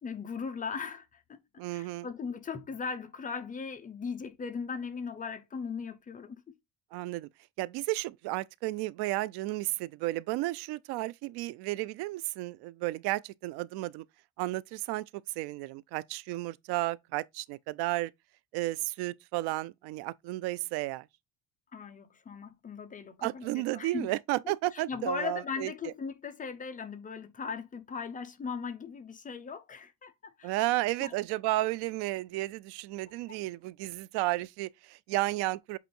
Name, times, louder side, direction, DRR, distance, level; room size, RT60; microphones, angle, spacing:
voice 1, 0.0-1.4 1.7-6.5 21.7-24.1 24.4-30.6 31.0-31.1 33.3-33.4, left 5 dB, 20° left, 0.8 m, -38 dB
voice 2, 1.6-2.1 6.9-7.3 7.6-14.0 14.4-18.1 18.5-21.1 23.2-25.7 30.4-35.8, right 18 dB, 85° right, 0.6 m, -33 dB
8.1 x 2.8 x 4.4 m
cardioid pair, 155°, 38 cm